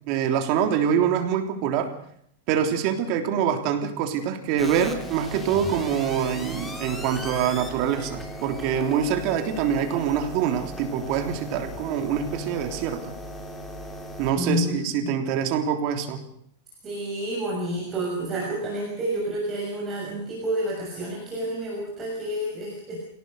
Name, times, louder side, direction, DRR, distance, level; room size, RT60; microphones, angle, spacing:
voice 1, 0.1-1.9 2.5-13.1 14.2-16.2, right 8 dB, 40° right, 5 dB, 3.5 m, -25 dB
sound 1, 4.6-14.3, equal, 5° left, 3.2 m, -37 dB
voice 2, 14.4-15.1 16.8-23.0, right 1 dB, 20° right, -3 dB, 6.6 m, -29 dB
26.5 x 18.0 x 6.6 m, 0.67 s
supercardioid pair, 160°, 0 cm